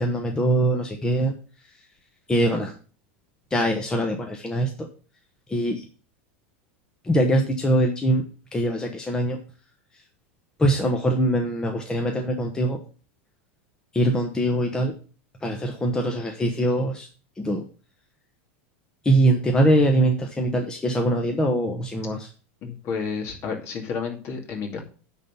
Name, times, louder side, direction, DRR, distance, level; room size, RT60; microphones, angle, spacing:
voice 1, 0.0-1.3 2.3-2.7 3.5-4.9 5.5-5.8 7.0-8.2 8.5-9.4 10.6-12.8 13.9-14.9 15.4-17.1 17.4-17.6 19.0-22.3, right 1 dB, 10° left, 2 dB, 1.1 m, -22 dB
voice 2, 22.6-24.8, left 5 dB, 40° left, 2 dB, 2.5 m, -31 dB
9.7 x 4.0 x 6.9 m, 0.38 s
supercardioid pair, 135°, 6 cm